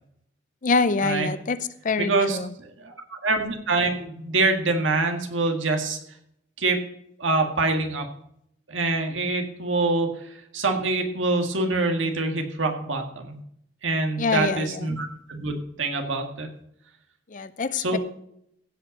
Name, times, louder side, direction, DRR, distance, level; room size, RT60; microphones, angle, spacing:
voice 1, 0.6-1.6 1.8-2.5 14.2-14.9 17.3-18.0, left 4 dB, 40° left, 15 dB, 0.5 m, -25 dB
voice 2, 2.0-6.0 6.6-6.8 7.2-8.1 8.7-13.4 13.8-16.5 17.8-18.0, right 3 dB, 85° right, 4 dB, 1.8 m, -25 dB
16.0 x 5.5 x 5.3 m, 0.74 s
head